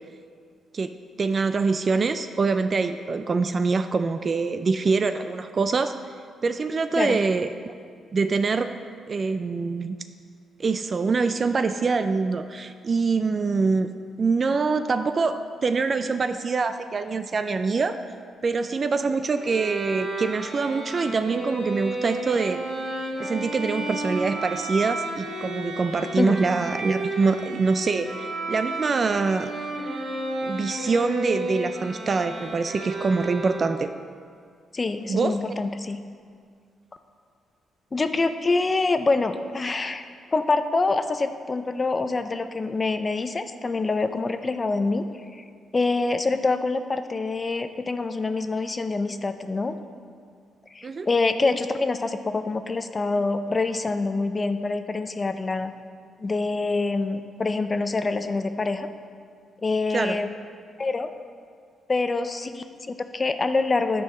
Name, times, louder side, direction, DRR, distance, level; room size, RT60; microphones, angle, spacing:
voice 1, 1.2-5.9 6.4-7.7 8.1-8.7 9.1-10.0 10.6-13.9 14.2-18.0 18.4-22.6 23.0-29.5 30.4-33.9 35.1-35.4 50.8-51.1 59.9-60.2, right 4 dB, 40° right, 9 dB, 0.3 m, -24 dB
Bowed string instrument, 19.3-34.0, right 2 dB, 90° right, 2.5 m, -32 dB
voice 2, 34.7-36.0 37.9-40.1 40.3-45.0 45.3-45.4 45.7-49.7 50.7-55.7 56.2-58.9 59.6-60.3 60.8-61.1 61.9-64.0, left 3 dB, 30° left, 9 dB, 0.5 m, -25 dB
10.5 x 4.6 x 6.3 m, 2.1 s
cardioid pair, 95°, 0 cm